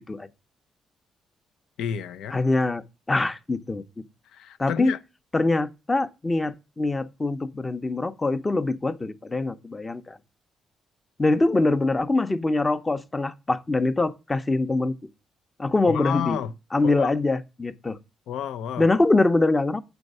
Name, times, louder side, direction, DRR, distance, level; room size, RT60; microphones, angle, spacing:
voice 1, 1.8-2.4 4.3-5.0 15.9-16.5 16.8-17.1 18.3-18.9, left 8 dB, 80° left, 0.6 m, -30 dB
voice 2, 2.3-2.8 3.1-3.8 4.6-4.9 5.3-10.2 11.2-14.9 15.6-16.4 16.7-18.0 18.8-19.8, left 2 dB, 20° left, 0.7 m, -23 dB
8.1 x 4.5 x 5.3 m
cardioid pair, 90°, 0 cm